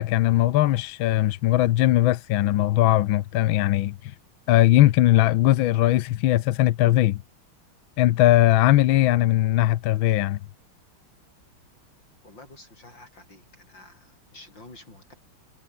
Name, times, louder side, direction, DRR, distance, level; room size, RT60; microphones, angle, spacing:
voice 1, 0.0-3.9 4.5-7.2 8.0-10.4, left 14 dB, 70° left, 1.5 m, -19 dB
voice 2, 12.2-15.1, left 2 dB, 55° left, 7.7 m, -49 dB
omnidirectional pair, 2.4 m